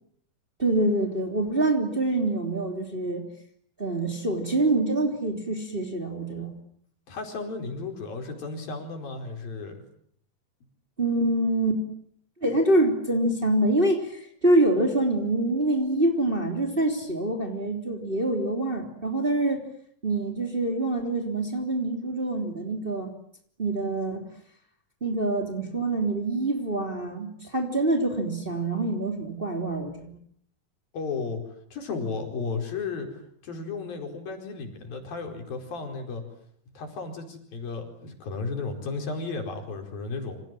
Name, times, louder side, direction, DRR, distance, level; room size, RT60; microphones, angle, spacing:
voice 1, 0.6-3.2 3.8-6.6 11.0-11.8 12.4-19.7 20.0-23.1 23.6-24.2 25.0-30.2, right 2 dB, 15° right, 3 dB, 3.1 m, -25 dB
voice 2, 7.1-9.8 30.9-31.4 31.7-36.2 36.7-40.4, left 4 dB, 75° left, 4 dB, 6.5 m, -34 dB
28.5 x 26.5 x 7.7 m, 0.65 s
omnidirectional pair, 4.1 m